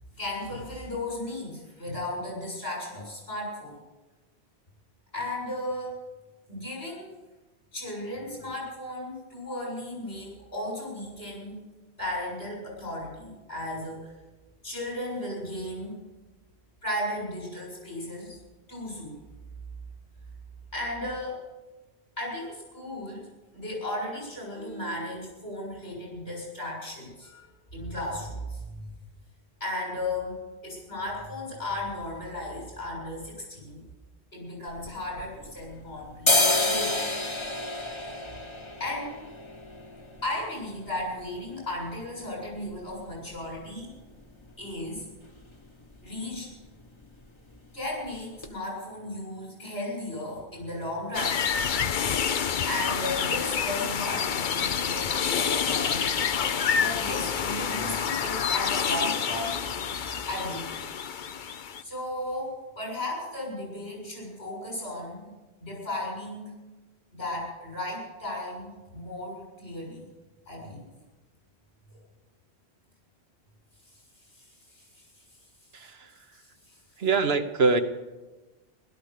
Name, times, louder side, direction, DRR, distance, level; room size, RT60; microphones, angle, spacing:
voice 1, 0.2-3.7 5.1-5.9 6.5-7.1 7.7-11.6 12.0-14.1 14.6-16.0 16.8-18.4 18.7-19.2 20.7-21.4 22.2-23.3 23.5-27.5 27.7-28.8 29.6-33.8 34.3-37.1 38.8-39.1 40.2-43.9 44.6-45.1 46.0-46.5 47.7-51.4 52.7-56.1 56.8-59.6 60.3-60.7 61.8-65.3 65.6-66.5 67.1-70.0 70.5-70.8 74.7-75.1 76.3-76.8, left 1 dB, 80° left, -3 dB, 7.8 m, -35 dB
sound 1, 34.7-35.7 36.1-43.8 44.1-44.2 44.5-45.0 45.3-45.6 45.8-46.1 46.3-47.1 47.4-47.6 48.0-48.1 48.4-48.5, left 2 dB, 25° left, 1.2 m, -30 dB
sound 2, 51.1-61.8, left 7 dB, 50° left, 0.8 m, -28 dB
voice 2, 75.7-76.2 77.0-77.8, right 4 dB, 70° right, 8 dB, 1.3 m, -24 dB
16.5 x 13.0 x 6.7 m, 1.2 s
omnidirectional pair, 1.1 m